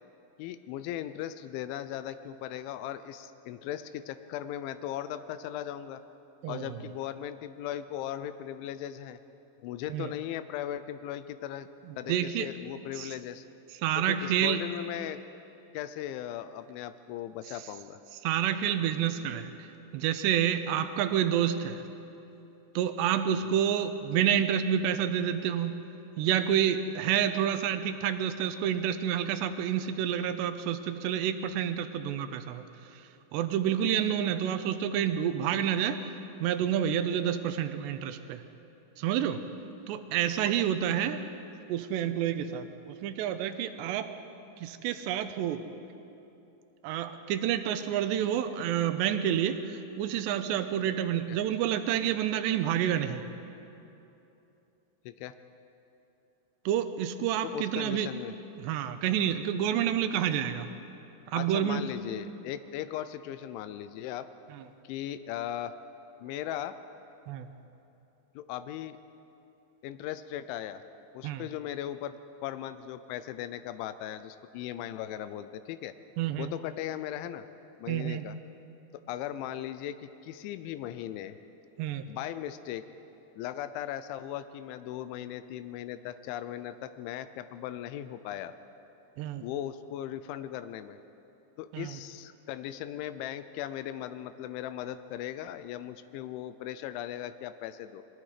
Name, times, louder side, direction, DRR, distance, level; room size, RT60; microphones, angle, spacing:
voice 1, 0.4-6.0 6.5-9.2 9.6-11.7 12.0-13.4 14.0-15.2 15.7-18.0 23.4-23.6 51.1-51.4 55.1-55.4 57.4-58.3 61.3-64.3 64.8-65.7 66.2-66.8 68.4-69.0 69.8-70.8 71.1-72.2 72.4-75.9 76.4-77.4 77.8-78.4 79.1-81.4 82.1-82.8 83.4-88.5 89.4-91.0 91.6-98.0, left 11 dB, 90° left, 11 dB, 3.1 m, -38 dB
voice 2, 6.4-6.7 9.9-10.1 12.1-12.5 13.0-13.1 13.8-14.6 18.2-19.5 19.9-21.8 22.8-25.7 26.2-32.6 33.3-36.1 36.4-38.4 39.0-39.4 39.9-41.2 41.7-44.1 44.6-45.6 46.8-53.2 56.7-58.1 58.6-60.7 61.3-61.9 67.3-67.5 71.2-71.4 76.2-76.5 77.9-78.2 81.8-82.0 89.2-89.4 91.7-91.9, right 9 dB, 80° right, 9 dB, 2.9 m, -29 dB
28.5 x 22.0 x 5.0 m, 2.9 s
omnidirectional pair, 5.2 m